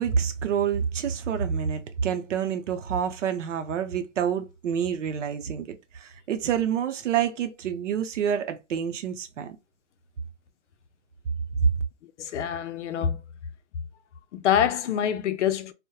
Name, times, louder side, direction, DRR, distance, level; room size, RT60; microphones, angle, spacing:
voice 1, 0.0-9.6 11.6-11.7, right 7 dB, 75° right, 0.6 m, -27 dB
voice 2, 12.2-13.2 14.3-15.7, left 9 dB, 70° left, 0.5 m, -25 dB
2.8 x 2.1 x 2.2 m
hypercardioid pair, 155°, 37 cm